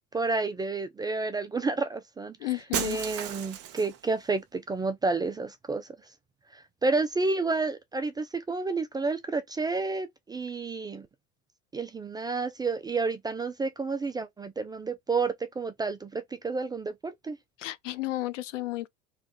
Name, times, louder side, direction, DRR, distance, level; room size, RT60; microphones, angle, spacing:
voice 1, 0.1-5.9 6.5-11.1 11.7-17.4, right 3 dB, 10° right, 0.4 m, -30 dB
voice 2, 2.4-3.0 17.6-18.9, left 16 dB, 70° left, 0.6 m, -32 dB
Shatter, 2.7-4.1, right 10 dB, 40° right, 0.9 m, -34 dB
3.3 x 3.1 x 3.8 m
hypercardioid pair, 80°, 38 cm